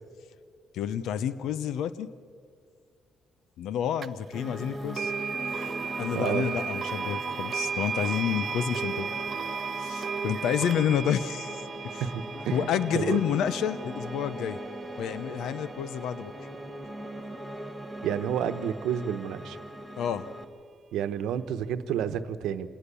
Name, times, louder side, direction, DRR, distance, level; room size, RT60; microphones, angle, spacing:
voice 1, 0.7-2.1 3.6-5.1 6.0-9.1 9.8-12.0 12.5-14.6 15.0-16.3 20.0-20.3, left 9 dB, 80° left, 14 dB, 0.8 m, -29 dB
sound 1, 4.0-4.1 4.9-15.9, right 6 dB, 50° right, 0.5 m, -35 dB
Piano, 4.3-20.4, right 1 dB, 5° left, 1.9 m, -40 dB
voice 2, 6.1-6.5 12.0-12.7 12.9-13.2 18.0-19.6 20.9-22.7, right 9 dB, 85° right, 10 dB, 1.0 m, -30 dB
27.5 x 18.5 x 7.0 m, 2.2 s
cardioid pair, 90°, 0 cm